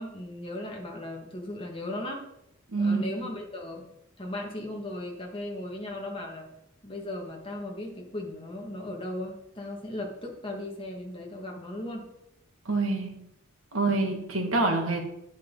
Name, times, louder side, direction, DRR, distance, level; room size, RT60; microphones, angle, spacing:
voice 1, 0.0-2.3 2.8-3.8 4.2-6.5 6.8-12.1 13.8-14.0, left 1 dB, 25° left, 0 dB, 2.4 m, -37 dB
voice 2, 2.7-3.1 12.7-13.3 13.7-15.0, right 3 dB, 80° right, 2 dB, 2.4 m, -26 dB
11.0 x 10.5 x 4.2 m, 0.82 s
head